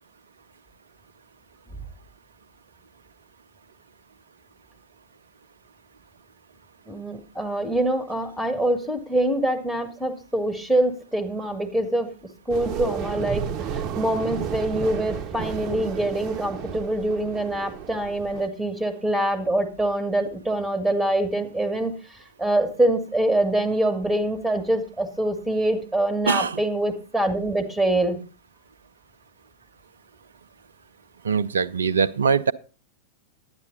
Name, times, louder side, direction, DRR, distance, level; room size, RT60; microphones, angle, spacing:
voice 1, 6.9-12.1 12.5-21.9 22.4-28.2, right 1 dB, ahead, 1.7 m, -24 dB
sound 1, 12.5-18.5, right 8 dB, 35° right, 0.8 m, -32 dB
voice 2, 26.3-26.6 31.2-32.5, right 6 dB, 70° right, 0.4 m, -22 dB
10.5 x 9.6 x 3.9 m
figure-of-eight pair, 90°, 0 cm